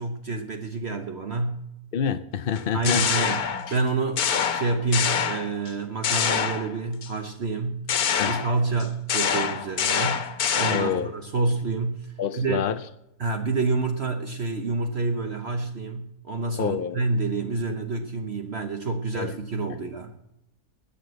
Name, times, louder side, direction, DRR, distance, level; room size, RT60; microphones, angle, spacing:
voice 1, 0.0-1.6 2.7-3.4 3.7-10.2 10.5-12.6 13.2-20.2, right 3 dB, 50° right, 6 dB, 1.1 m, -28 dB
voice 2, 1.9-3.0 8.2-8.3 10.7-11.1 12.2-12.8 16.6-17.0 19.1-19.3, left 8 dB, 55° left, 10 dB, 0.6 m, -27 dB
sound 1, 2.6-3.8 4.2-5.7 6.0-7.1 7.9-11.1, left 7 dB, 85° left, 1.5 m, -26 dB
20.5 x 6.9 x 7.8 m, 0.86 s
omnidirectional pair, 1.5 m